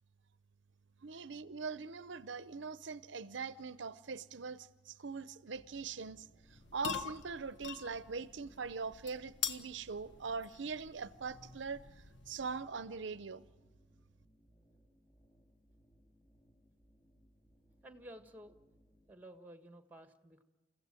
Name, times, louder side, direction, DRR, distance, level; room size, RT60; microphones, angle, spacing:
voice 1, 1.0-11.8 12.3-13.4, right 5 dB, 75° right, 0.7 m, -42 dB
sound 1, 5.6-19.1, equal, 25° left, 2.7 m, -68 dB
sound 2, 6.4-12.8, left 7 dB, 70° left, 1.4 m, -45 dB
voice 2, 17.8-18.6 19.1-20.4, right 1 dB, 10° right, 1.5 m, -53 dB
29.0 x 15.5 x 9.0 m
head